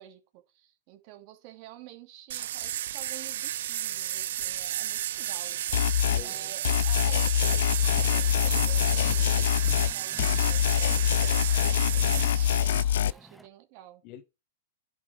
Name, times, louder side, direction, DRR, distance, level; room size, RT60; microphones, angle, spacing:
voice 1, 0.0-11.4 11.9-14.0, right 13 dB, 45° right, 2.6 m, -50 dB
sound 1, 2.3-12.8, right 12 dB, 65° right, 0.4 m, -33 dB
sound 2, 5.7-6.2 6.6-9.9 10.2-13.1, left 10 dB, 70° left, 0.5 m, -24 dB
voice 2, 6.1-6.5 8.9-9.6 11.5-12.0 14.0-14.2, left 12 dB, 40° left, 1.4 m, -46 dB
Car, 7.8-13.5, right 2 dB, 5° right, 0.8 m, -47 dB
10.5 x 6.0 x 5.1 m
hypercardioid pair, 140°, 0 cm